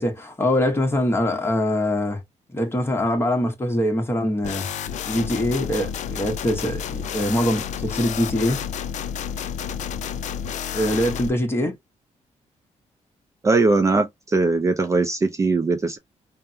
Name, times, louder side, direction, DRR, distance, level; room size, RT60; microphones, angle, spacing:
voice 1, 0.0-2.2 2.5-4.7 5.1-8.6 10.7-11.8, left 1 dB, 20° left, 1.0 m, -23 dB
sound 1, 4.4-11.3, left 8 dB, 70° left, 0.4 m, -30 dB
voice 2, 13.4-16.0, right 3 dB, 25° right, 0.4 m, -20 dB
3.3 x 2.1 x 2.7 m
cardioid pair, 115°, 13 cm